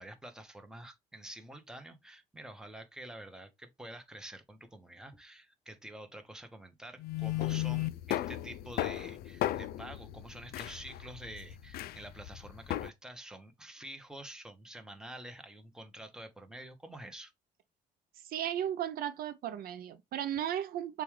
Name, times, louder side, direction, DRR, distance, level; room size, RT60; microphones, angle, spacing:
voice 1, 0.0-17.3, right 1 dB, 5° right, 0.9 m, -48 dB
sound 1, 7.0-12.9, left 14 dB, 65° left, 0.4 m, -35 dB
voice 2, 18.2-21.0, right 10 dB, 65° right, 0.5 m, -35 dB
6.8 x 2.4 x 3.2 m
cardioid pair, 110°, 17 cm